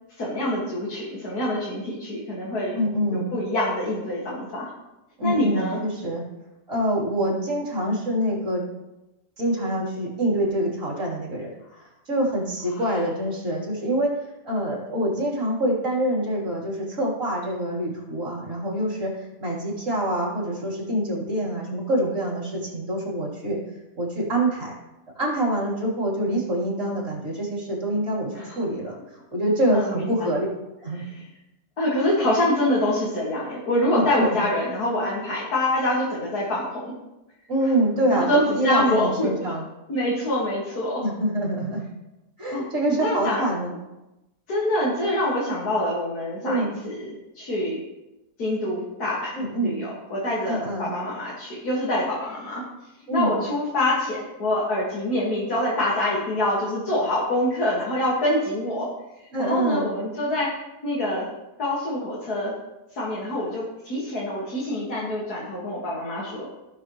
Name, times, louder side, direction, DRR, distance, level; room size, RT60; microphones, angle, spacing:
voice 1, 0.2-2.8 3.1-4.7 5.2-5.8 12.8-12.9 28.3-28.6 29.7-30.0 31.8-36.9 38.1-39.5 39.9-41.0 42.5-43.4 44.5-47.8 48.4-52.6 53.1-58.9 59.4-60.5 60.8-61.3 61.6-62.5 62.9-66.5, left 1 dB, 65° left, -6 dB, 2.6 m, -25 dB
voice 2, 2.7-3.3 5.2-6.2 6.7-8.6 9.4-11.5 12.1-19.1 19.4-23.6 24.0-24.7 25.2-30.5 30.8-31.1 33.9-34.4 37.5-39.7 41.0-41.8 42.4-43.7 46.4-46.7 49.3-49.7 50.5-50.9 53.1-53.3 59.3-59.9, right 1 dB, 45° right, -5 dB, 3.9 m, -25 dB
17.5 x 6.6 x 3.2 m, 0.98 s
omnidirectional pair, 1.8 m